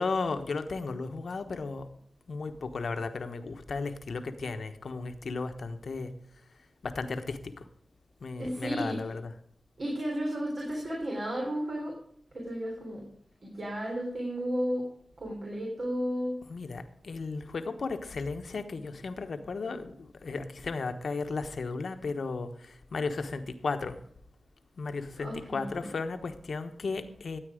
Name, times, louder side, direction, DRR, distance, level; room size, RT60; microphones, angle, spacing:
voice 1, 0.0-1.9 2.3-6.1 6.8-7.7 8.2-9.3 16.5-24.0 24.8-27.4, left 4 dB, 75° left, 7 dB, 1.1 m, -35 dB
voice 2, 8.4-9.0 9.8-11.9 12.3-13.0 13.4-14.8 15.2-16.4 25.2-25.8, equal, 65° right, -3 dB, 3.6 m, -33 dB
13.5 x 8.9 x 5.0 m, 0.65 s
cardioid pair, 60°, 0 cm